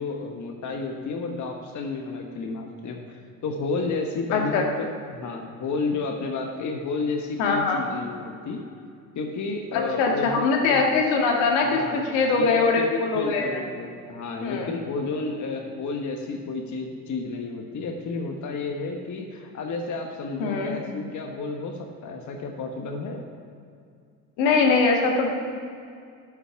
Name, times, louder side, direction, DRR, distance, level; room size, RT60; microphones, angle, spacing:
voice 1, 0.0-8.6 9.1-11.0 11.7-23.2, left 3 dB, 40° left, 2 dB, 1.2 m, -31 dB
voice 2, 4.3-4.6 7.4-7.8 9.7-13.6 14.4-14.7 20.4-20.7 24.4-25.3, left 4 dB, 70° left, 1 dB, 1.8 m, -22 dB
11.0 x 6.0 x 5.7 m, 2.3 s
hypercardioid pair, 70°, 45 cm